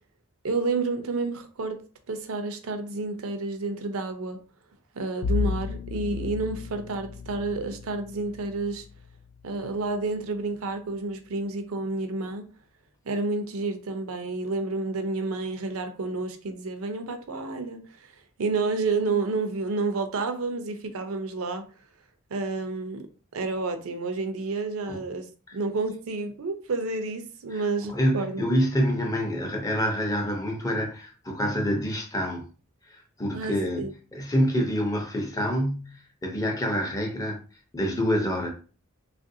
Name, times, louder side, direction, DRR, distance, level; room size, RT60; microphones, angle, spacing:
voice 1, 0.4-1.8 2.1-4.4 4.9-8.9 9.4-12.4 13.1-18.1 18.4-21.6 22.3-23.0 23.3-28.5 33.3-33.9, right 3 dB, 75° right, 0.5 m, -30 dB
Bowed string instrument, 5.2-10.3, left 5 dB, 90° left, 0.3 m, -34 dB
voice 2, 27.9-32.4 32.9-33.8 34.1-37.4 37.7-38.5, equal, 15° left, 0.6 m, -27 dB
3.3 x 2.5 x 2.7 m
head